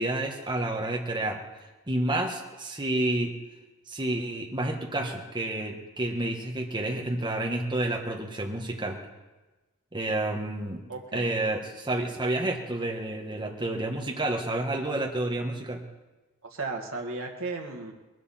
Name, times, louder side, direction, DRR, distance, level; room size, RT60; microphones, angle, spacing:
voice 1, 0.0-1.4 1.9-3.3 3.9-9.0 9.9-10.8 11.1-15.8, right 1 dB, 20° right, 1 dB, 1.4 m, -29 dB
voice 2, 10.9-11.3 16.4-17.9, right 3 dB, 65° right, 0 dB, 1.9 m, -35 dB
21.0 x 13.5 x 4.3 m, 1.1 s
head